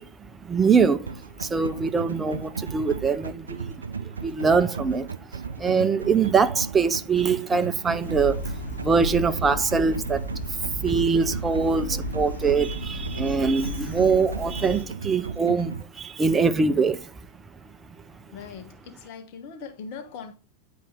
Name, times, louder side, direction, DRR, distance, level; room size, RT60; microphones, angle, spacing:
voice 1, 0.0-17.2, right 5 dB, 15° right, 0.6 m, -24 dB
sound 1, 1.1-15.8, right 5 dB, 75° right, 0.3 m, -36 dB
sound 2, 8.0-14.8, left 1 dB, 75° left, 1.8 m, -34 dB
voice 2, 18.3-20.3, left 5 dB, 45° left, 1.2 m, -40 dB
9.2 x 4.1 x 3.5 m
figure-of-eight pair, 90°, 0 cm